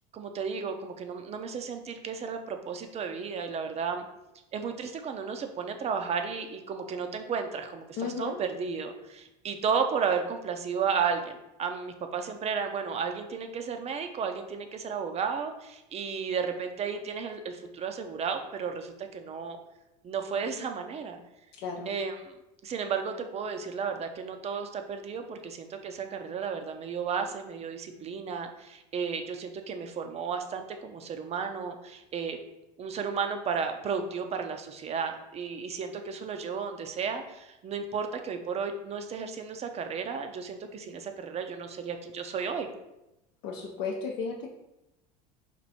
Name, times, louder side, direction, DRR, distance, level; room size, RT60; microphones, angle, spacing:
voice 1, 0.1-4.1 4.5-19.6 20.0-21.2 21.9-22.3 22.6-32.4 32.8-42.7, right 6 dB, 35° right, 6 dB, 0.6 m, -33 dB
voice 2, 8.0-8.4 21.5-21.9 43.4-44.5, left 5 dB, 60° left, -1 dB, 0.6 m, -34 dB
4.4 x 2.6 x 4.1 m, 0.92 s
supercardioid pair, 105°, 20 cm